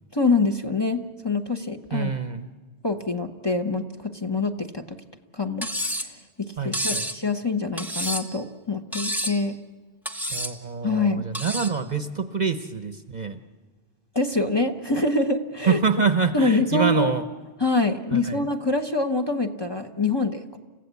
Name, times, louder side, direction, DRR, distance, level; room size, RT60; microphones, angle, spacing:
voice 1, 0.1-2.1 2.8-5.0 5.3-5.7 6.0-6.1 6.4-9.6 10.8-11.3 14.1-15.8 16.3-17.1 17.6-20.6, left 3 dB, 25° left, 3 dB, 1.0 m, -25 dB
voice 2, 1.9-2.5 6.6-7.1 10.3-13.4 15.7-17.2 18.1-18.4, right 5 dB, 40° right, 10 dB, 0.9 m, -26 dB
Cutlery silverware, 5.6-6.1 6.7-7.2 7.8-8.4 8.9-9.4 10.1-10.6 11.3-11.8, equal, ahead, 1.1 m, -29 dB
29.5 x 15.5 x 8.3 m, 1.5 s
omnidirectional pair, 1.2 m